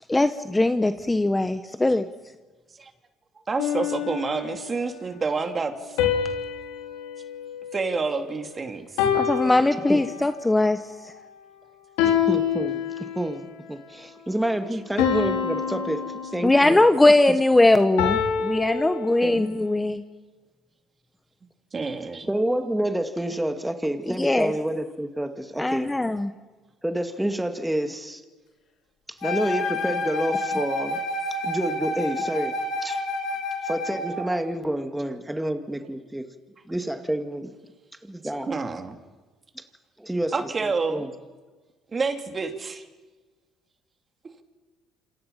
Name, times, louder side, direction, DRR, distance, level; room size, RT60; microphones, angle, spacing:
voice 1, 0.1-2.1 9.1-11.1 16.4-20.0 24.0-24.5 25.6-26.3, left 2 dB, 10° left, 10 dB, 1.1 m, -20 dB
voice 2, 3.5-6.0 7.7-8.9 19.2-19.4 21.7-22.3 35.4-35.5 38.5-39.0 40.3-41.0 41.9-42.8, right 4 dB, 30° right, 5 dB, 3.1 m, -28 dB
sound 1, 3.6-4.8 6.0-8.4 9.0-10.5 12.0-13.5 15.0-16.9 18.0-19.6, left 8 dB, 90° left, 3.7 m, -27 dB
voice 3, 12.1-16.0 16.3-16.8 17.3-17.4 22.3-25.9 26.8-28.2 29.2-31.0 31.4-32.6 32.8-33.0 33.6-36.3 36.7-37.5 38.0-38.5 40.0-41.1, right 1 dB, 5° right, 6 dB, 2.2 m, -28 dB
Wind instrument woodwind instrument, 29.2-34.3, left 2 dB, 65° left, 5.7 m, -29 dB
27.5 x 26.5 x 5.8 m, 1.3 s
supercardioid pair, 85°, 0 cm